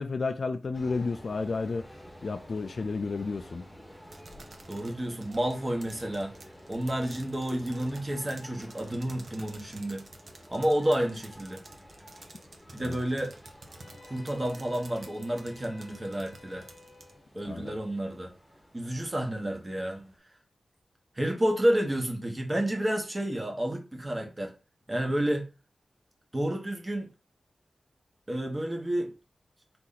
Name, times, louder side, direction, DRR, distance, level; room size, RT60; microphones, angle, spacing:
voice 1, 0.0-1.9 2.2-3.6 12.8-13.0 17.4-17.8, left 4 dB, 60° left, 0.3 m, -32 dB
sound 1, 0.7-20.2, equal, 10° left, 1.1 m, -51 dB
sound 2, 4.1-17.1, right 3 dB, 70° right, 0.8 m, -50 dB
voice 2, 4.7-6.4 6.7-10.1 10.5-11.6 12.7-13.3 14.0-16.7 17.3-18.3 18.7-20.1 21.2-24.5 24.9-25.5 26.3-27.1 28.3-29.1, right 1 dB, 25° right, 1.1 m, -30 dB
Wind instrument woodwind instrument, 13.8-17.3, left 3 dB, 35° left, 0.8 m, -53 dB
4.2 x 2.9 x 3.8 m
wide cardioid pair, 100°, 0 cm